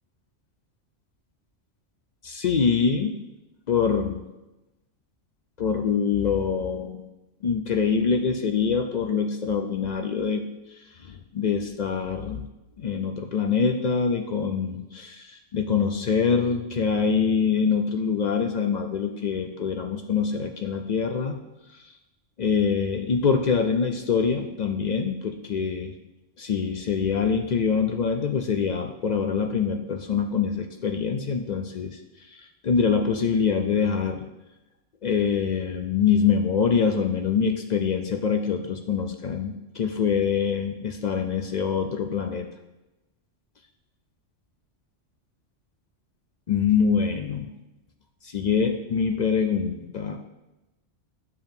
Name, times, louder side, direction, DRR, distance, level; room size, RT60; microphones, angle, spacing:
voice 1, 2.2-3.2 3.7-4.2 5.6-7.0 7.4-10.4 11.1-12.5 12.8-21.4 22.4-25.9 26.4-32.0 32.6-34.2 35.0-42.5 46.5-47.5 48.2-50.2, left 6 dB, 60° left, 5 dB, 0.4 m, -24 dB
9.6 x 6.9 x 2.7 m, 1.0 s
omnidirectional pair, 1.2 m